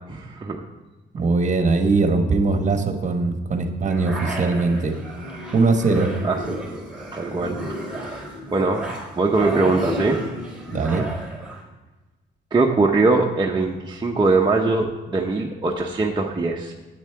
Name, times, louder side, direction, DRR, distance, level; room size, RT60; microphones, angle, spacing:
voice 1, 0.1-0.6 6.2-6.6 7.1-8.0 8.5-8.9 9.2-10.2 12.5-16.7, right 3 dB, 20° right, -1 dB, 0.8 m, -21 dB
voice 2, 1.1-5.0 5.5-6.1 10.7-11.0, right 3 dB, 40° right, 6 dB, 1.3 m, -21 dB
sound 1, 3.9-11.6, right 1 dB, 5° right, 3.8 m, -32 dB
9.2 x 8.5 x 4.6 m, 1.2 s
cardioid pair, 90°, 20 cm